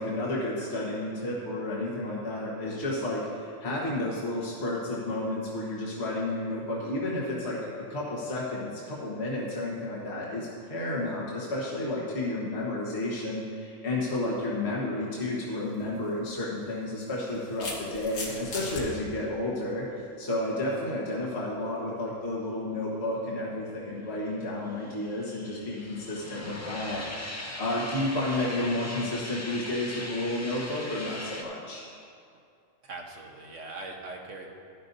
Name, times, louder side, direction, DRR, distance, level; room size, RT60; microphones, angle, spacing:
voice 1, 0.0-7.6 7.9-31.8, left 1 dB, 55° left, -6 dB, 1.7 m, -31 dB
sound 1, 15.7-15.8 16.9-18.8, left 2 dB, 80° left, 1.9 m, -37 dB
sound 2, 24.3-31.4, left 1 dB, 15° left, 0.6 m, -40 dB
voice 2, 32.8-34.5, right 3 dB, 70° right, 1 dB, 1.4 m, -41 dB
13.0 x 11.0 x 2.7 m, 2.4 s
omnidirectional pair, 1.3 m